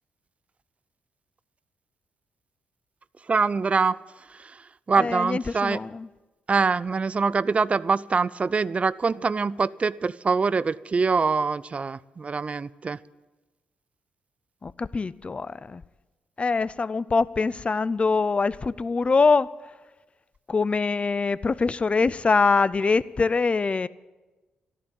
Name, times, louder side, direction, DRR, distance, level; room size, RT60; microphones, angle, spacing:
voice 1, 3.3-4.0 4.3-5.8 6.5-13.0, right 4 dB, 40° right, 0.5 m, -24 dB
voice 2, 5.0-6.1 14.6-15.8 16.4-19.5 20.5-23.9, left 4 dB, 35° left, 0.5 m, -23 dB
13.0 x 11.0 x 8.9 m
cardioid pair, 60°, 3 cm